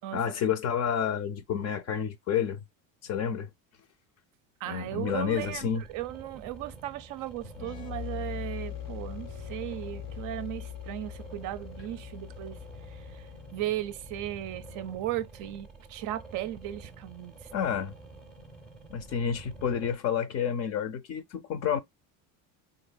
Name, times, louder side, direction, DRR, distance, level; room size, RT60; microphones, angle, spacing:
voice 1, 0.1-2.6 3.0-3.5 4.7-5.8 17.5-18.0 18.9-21.8, left 8 dB, 40° left, 0.6 m, -29 dB
voice 2, 4.6-17.5, right 13 dB, 55° right, 0.5 m, -37 dB
sound 1, 4.8-20.0, right 3 dB, ahead, 0.6 m, -49 dB
sound 2, 7.5-15.1, left 12 dB, 80° left, 1.1 m, -42 dB
3.8 x 2.6 x 2.2 m
cardioid pair, 135°, 39 cm